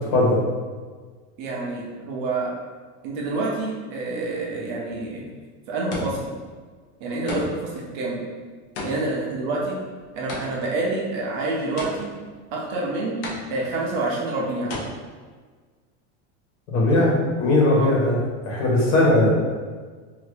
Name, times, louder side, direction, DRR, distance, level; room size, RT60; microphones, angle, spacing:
voice 1, 0.1-0.4 16.7-18.2 18.4-19.3, left 1 dB, 75° left, -5 dB, 1.3 m, -19 dB
voice 2, 1.4-2.5 3.0-5.3 5.7-6.3 7.0-8.2 8.8-9.8 10.1-12.1 12.5-13.2 13.5-14.8 17.7-17.9, right 2 dB, 40° right, -3 dB, 0.5 m, -27 dB
sound 1, 5.0-5.3 5.9-6.5 7.3-7.8 8.7-10.8 11.8-12.3 13.2-13.8 14.7-14.8, left 2 dB, 50° left, 0.6 m, -33 dB
2.8 x 2.6 x 3.3 m, 1.5 s
supercardioid pair, 175°, 37 cm